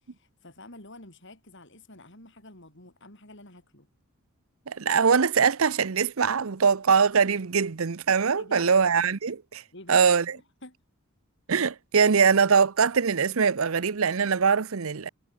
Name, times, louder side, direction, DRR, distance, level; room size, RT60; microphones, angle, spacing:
voice 1, 0.2-3.9 8.4-8.7 9.7-10.8, left 2 dB, 55° left, 8.0 m, -48 dB
voice 2, 4.7-9.6 9.9-10.3 11.5-15.1, right 6 dB, 70° right, 0.7 m, -22 dB
head